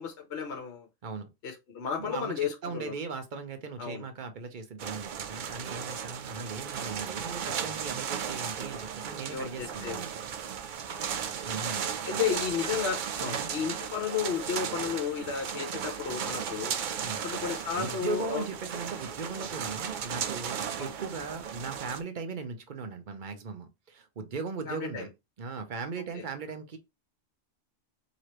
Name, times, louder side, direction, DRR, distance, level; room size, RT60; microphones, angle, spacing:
voice 1, 0.0-0.9 1.4-2.9 3.8-4.1 9.3-10.0 10.9-11.5 12.0-16.7 17.2-18.4 20.8-20.9 24.7-25.1 26.1-26.3, left 7 dB, 60° left, 1.1 m, -33 dB
voice 2, 2.0-10.1 11.4-12.4 13.2-13.5 17.0-17.2 17.8-25.1 25.4-26.8, right 4 dB, 45° right, 0.8 m, -38 dB
sound 1, 4.8-22.0, right 8 dB, 65° right, 0.5 m, -35 dB
4.8 x 3.0 x 3.0 m
omnidirectional pair, 1.3 m